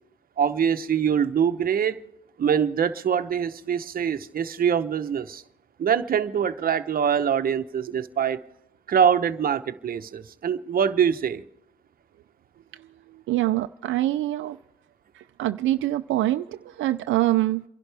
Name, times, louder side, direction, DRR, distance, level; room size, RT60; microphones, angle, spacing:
voice 1, 0.4-2.0 2.4-5.4 5.8-8.4 8.9-11.4, right 8 dB, 45° right, 1.0 m, -24 dB
voice 2, 13.1-14.6 15.1-17.6, right 15 dB, 75° right, 0.5 m, -25 dB
29.0 x 11.5 x 3.5 m
cardioid pair, 90°, 20 cm